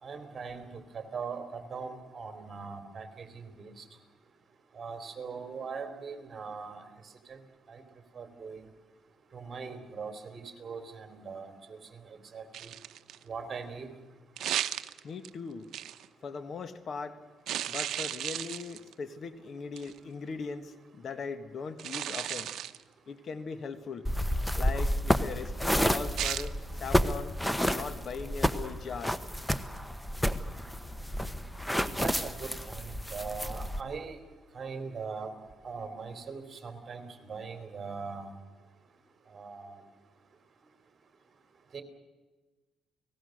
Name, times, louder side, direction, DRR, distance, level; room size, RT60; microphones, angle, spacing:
voice 1, 0.0-3.8 4.7-6.8 7.3-7.4 7.7-7.8 8.1-8.6 9.3-12.7 13.3-13.9 32.0-34.2 34.5-35.3 35.6-38.3 39.3-39.8 41.7-41.8, right 5 dB, 40° right, 7 dB, 3.3 m, -41 dB
sound 1, 12.5-13.2 14.4-15.3 15.7-16.1 17.5-18.9 19.8-20.0 21.8-22.8 26.2-26.5, right 11 dB, 75° right, 0.8 m, -34 dB
voice 2, 15.0-15.7 16.2-17.2 17.7-22.5 23.1-24.1 24.5-29.2, left 5 dB, 55° left, 11 dB, 1.5 m, -39 dB
sound 2, 24.0-33.8, equal, 5° left, 1.1 m, -30 dB
29.5 x 19.5 x 6.5 m, 1.3 s
cardioid pair, 90°, 0 cm